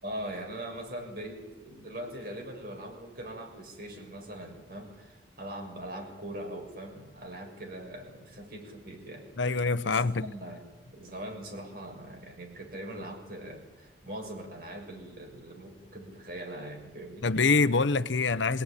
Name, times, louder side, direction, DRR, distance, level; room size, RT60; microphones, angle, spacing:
voice 1, 0.0-9.3 9.8-17.3, right 1 dB, 50° right, 6.6 m, -41 dB
voice 2, 9.4-10.3 17.2-18.6, left 4 dB, 80° left, 0.9 m, -25 dB
23.5 x 18.5 x 10.0 m
head